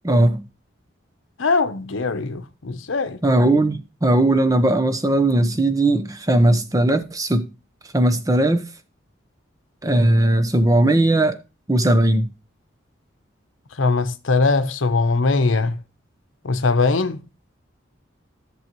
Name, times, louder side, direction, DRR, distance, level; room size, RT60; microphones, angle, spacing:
voice 1, 0.0-0.4 3.2-7.5 7.9-8.6 9.8-11.4 11.7-12.3, right 1 dB, 15° right, 0.7 m, -18 dB
voice 2, 1.4-3.2 13.8-15.8 16.4-17.2, left 3 dB, 85° left, 0.8 m, -21 dB
11.0 x 7.0 x 3.0 m
head